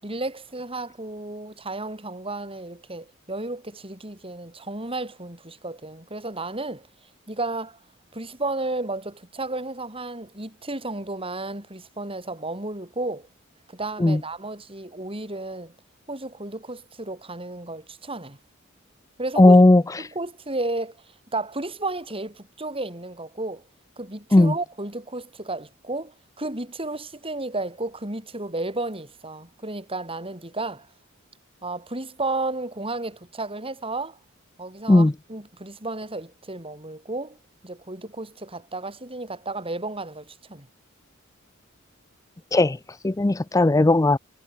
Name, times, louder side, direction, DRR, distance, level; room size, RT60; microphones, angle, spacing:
voice 1, 0.0-6.9 7.3-7.8 8.1-13.3 13.7-15.7 16.1-18.4 19.2-19.6 20.0-21.0 21.3-23.6 24.0-30.9 31.6-34.2 34.6-37.4 37.6-40.7, right 2 dB, 25° right, 8.0 m, -33 dB
voice 2, 19.4-19.8 24.3-24.5 34.9-35.1 42.5-42.8 43.0-44.2, left 2 dB, 15° left, 0.5 m, -16 dB
head